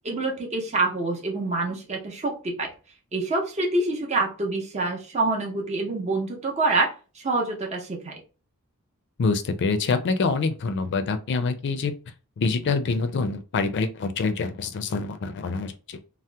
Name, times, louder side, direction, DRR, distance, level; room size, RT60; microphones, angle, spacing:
voice 1, 0.0-2.7 3.1-8.2, right 2 dB, 30° right, 0.7 m, -26 dB
voice 2, 9.2-11.9 12.4-16.0, left 4 dB, 55° left, 0.4 m, -26 dB
2.8 x 2.0 x 3.3 m
head